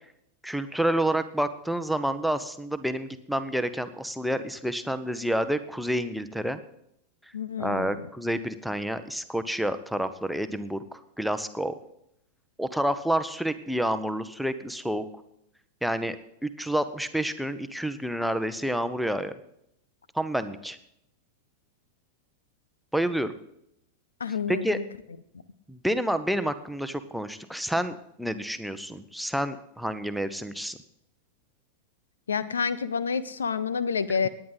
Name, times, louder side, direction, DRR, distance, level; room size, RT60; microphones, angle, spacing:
voice 1, 0.4-6.6 7.6-11.8 12.6-15.0 15.8-16.2 16.4-19.3 20.1-20.8 22.9-23.3 24.5-24.8 25.7-30.8, right 1 dB, ahead, 10 dB, 0.9 m, -29 dB
voice 2, 7.3-8.0 24.2-24.8 32.3-34.3, left 6 dB, 70° left, 17 dB, 0.6 m, -28 dB
18.0 x 10.0 x 4.0 m, 0.76 s
figure-of-eight pair, 90°, 0 cm